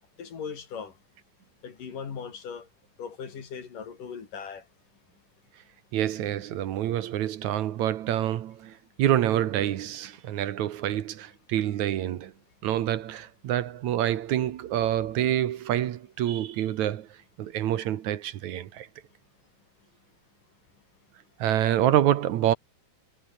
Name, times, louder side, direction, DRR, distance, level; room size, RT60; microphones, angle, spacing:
voice 1, 0.2-0.9 1.6-2.7 3.0-4.6, left 6 dB, 85° left, 5.3 m, -38 dB
voice 2, 5.9-12.3 12.6-17.1 17.4-18.9 21.4-22.5, right 12 dB, 70° right, 2.4 m, -27 dB
omnidirectional pair, 3.7 m